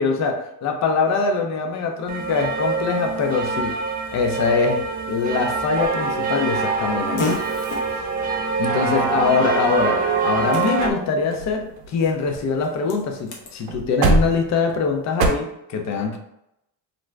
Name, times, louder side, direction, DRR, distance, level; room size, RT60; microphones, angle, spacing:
voice 1, 0.0-3.8 4.1-7.4 8.6-16.2, left 4 dB, 50° left, 3 dB, 0.6 m, -23 dB
sound 1, 2.1-10.9, right 5 dB, 25° right, 0.4 m, -25 dB
Fart, 5.8-13.6, left 2 dB, 85° left, 0.8 m, -35 dB
sound 2, 9.0-9.8 10.4-10.5 10.7-11.0 11.3-12.9 13.2-13.3 13.6-15.3, right 3 dB, 80° right, 0.6 m, -25 dB
2.5 x 2.1 x 3.2 m, 0.81 s
cardioid pair, 110°, 36 cm